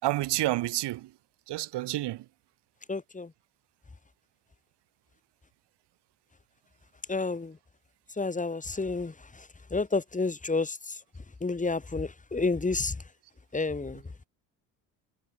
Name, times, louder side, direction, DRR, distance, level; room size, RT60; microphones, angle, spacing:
voice 1, 0.0-1.2 1.5-2.3, right 16 dB, 75° right, 5.5 m, -29 dB
voice 2, 2.9-3.3 7.1-7.5 8.2-9.1 9.7-10.8 11.4-12.9 13.5-14.0, left 3 dB, 20° left, 2.1 m, -29 dB
supercardioid pair, 65°, 42 cm